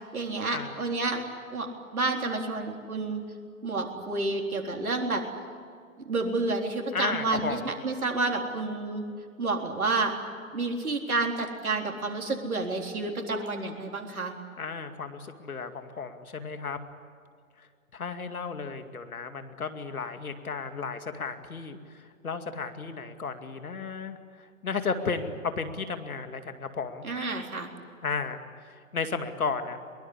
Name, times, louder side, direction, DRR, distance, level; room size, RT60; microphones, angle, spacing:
voice 1, 0.1-1.2 1.5-3.2 3.6-5.2 6.1-9.0 9.4-10.1 10.5-14.3 27.0-27.7, right 3 dB, 85° right, 2 dB, 3.9 m, -30 dB
voice 2, 6.9-7.7 14.6-16.8 17.6-27.1 28.0-29.8, left 5 dB, 80° left, 8 dB, 2.4 m, -34 dB
22.5 x 21.5 x 9.9 m, 2.2 s
figure-of-eight pair, 125°, 42 cm